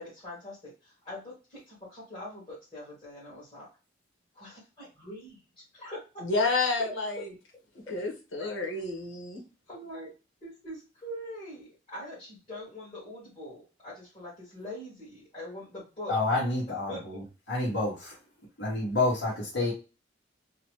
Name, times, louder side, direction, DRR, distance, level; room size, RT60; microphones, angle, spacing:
voice 1, 0.0-3.7 4.3-6.5 6.8-6.9 8.4-8.8 9.7-10.1 10.4-16.2 16.9-17.2, left 1 dB, 25° left, -10 dB, 1.3 m, -43 dB
voice 2, 6.2-7.3 7.9-9.4, left 3 dB, 90° left, 2 dB, 1.0 m, -29 dB
voice 3, 16.1-17.2 17.5-18.2 18.6-19.7, left 2 dB, 60° left, -6 dB, 1.2 m, -28 dB
2.9 x 2.1 x 3.0 m, 0.31 s
head